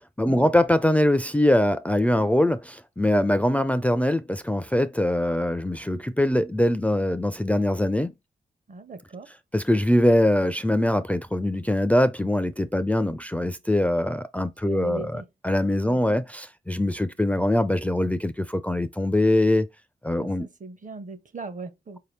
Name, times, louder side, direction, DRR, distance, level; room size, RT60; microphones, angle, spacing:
voice 1, 0.2-8.1 9.5-19.7 20.0-20.5, left 1 dB, 10° left, 0.4 m, -23 dB
voice 2, 8.7-9.3 14.6-15.3 15.8-16.0 20.2-22.0, right 3 dB, 50° right, 0.9 m, -39 dB
4.6 x 2.8 x 3.2 m
cardioid pair, 60°, 16 cm